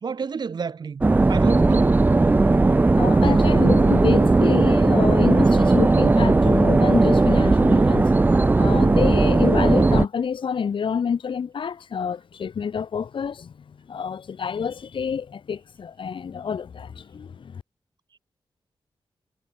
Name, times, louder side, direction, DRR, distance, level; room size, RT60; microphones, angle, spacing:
voice 1, 0.0-2.0, right 5 dB, 55° right, 3.2 m, -31 dB
sound 1, 1.0-10.1, right 3 dB, 20° right, 0.7 m, -17 dB
voice 2, 3.0-8.1 8.6-17.6, left 6 dB, 70° left, 4.6 m, -28 dB
wide cardioid pair, 165°, 9 cm